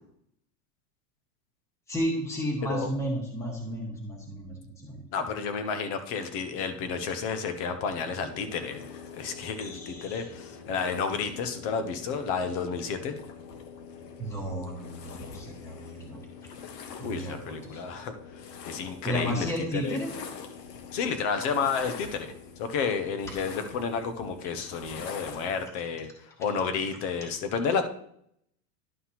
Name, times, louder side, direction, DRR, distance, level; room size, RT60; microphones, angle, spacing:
voice 1, 1.9-5.0 9.6-10.3 14.2-16.2 17.0-17.8 19.0-20.1, equal, 5° left, -1 dB, 1.3 m, -33 dB
voice 2, 5.1-13.2 17.0-20.0 20.9-22.3 22.6-27.8, left 5 dB, 25° left, 9 dB, 0.3 m, -31 dB
sound 1, 8.3-25.7, left 6 dB, 80° left, 1.2 m, -44 dB
11.0 x 5.7 x 2.8 m, 0.70 s
supercardioid pair, 150°, 48 cm